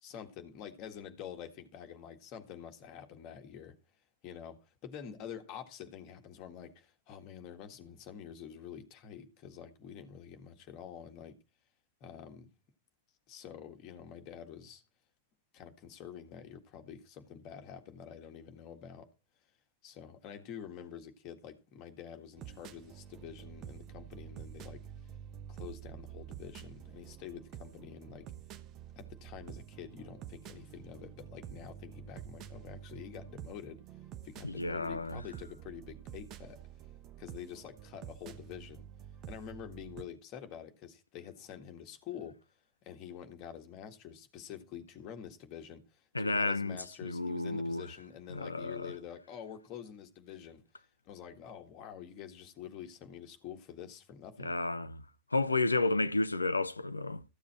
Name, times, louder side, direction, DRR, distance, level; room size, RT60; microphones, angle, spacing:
voice 1, 0.0-3.8 4.2-11.4 12.0-12.5 13.3-14.8 15.5-19.1 19.8-24.8 25.5-28.3 29.0-33.8 34.2-36.6 37.2-38.8 39.3-42.4 42.8-45.8 46.2-50.6 51.1-54.5, left 8 dB, 40° left, 1.8 m, -47 dB
sound 1, 22.4-40.0, right 10 dB, 35° right, 1.0 m, -49 dB
voice 2, 34.4-35.2 46.1-47.8 48.3-48.9 54.4-55.0 55.3-57.3, left 2 dB, 80° left, 0.6 m, -32 dB
14.5 x 7.2 x 4.3 m
figure-of-eight pair, 90°, 0 cm